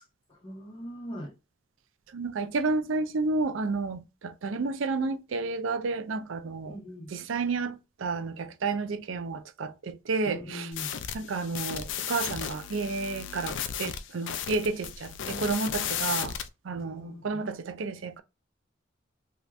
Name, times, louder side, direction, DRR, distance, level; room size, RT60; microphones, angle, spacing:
voice 1, 0.4-1.3 6.7-7.1 10.3-10.9 16.7-17.4, equal, 25° left, 1.3 m, -41 dB
voice 2, 2.1-6.7 7.1-10.7 11.1-16.3 16.7-18.2, right 3 dB, 90° right, 0.5 m, -31 dB
sound 1, 10.7-16.5, left 8 dB, 75° left, 0.4 m, -34 dB
3.2 x 2.8 x 2.4 m
head